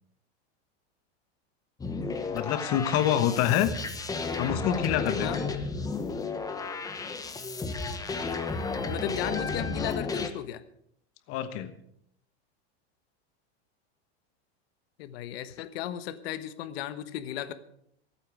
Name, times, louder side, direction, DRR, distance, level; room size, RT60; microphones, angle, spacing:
sound 1, 1.8-10.3, left 3 dB, 10° left, 1.1 m, -33 dB
voice 1, 2.3-3.7 4.4-5.5 11.3-11.7, left 11 dB, 45° left, 10 dB, 1.3 m, -26 dB
voice 2, 8.8-10.6 15.0-17.5, left 12 dB, 65° left, 12 dB, 1.3 m, -35 dB
23.5 x 9.0 x 4.9 m, 0.70 s
supercardioid pair, 145°, 33 cm